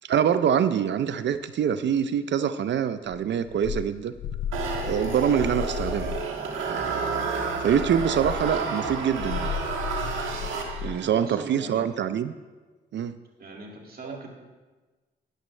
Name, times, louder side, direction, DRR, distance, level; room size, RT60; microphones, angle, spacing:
voice 1, 0.0-4.1 4.9-6.2 6.7-7.0 7.6-9.5 10.8-12.3 12.9-13.2 14.0-14.2, right 8 dB, 65° right, 12 dB, 0.5 m, -25 dB
sound 1, 3.1-6.3 7.5-11.0, left 8 dB, 75° left, 0.5 m, -35 dB
sound 2, 4.5-11.1, right 4 dB, 85° right, 1.4 m, -30 dB
voice 2, 10.8-11.9 13.4-14.3, right 3 dB, 50° right, 0 dB, 2.3 m, -41 dB
12.5 x 10.0 x 3.2 m, 1.3 s
cardioid pair, 75°, 20 cm